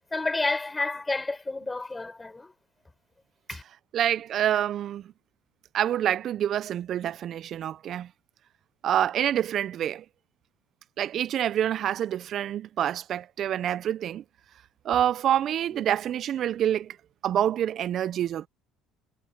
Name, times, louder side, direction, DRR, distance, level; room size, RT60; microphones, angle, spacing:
voice 1, 0.1-2.5 3.5-3.6 15.7-15.8, left 3 dB, 20° left, 5.6 m, -30 dB
voice 2, 3.9-5.1 5.7-8.1 8.8-10.0 11.0-14.2 14.8-17.0 17.2-18.5, right 10 dB, 55° right, 1.1 m, -27 dB
hypercardioid pair, 70°, 0 cm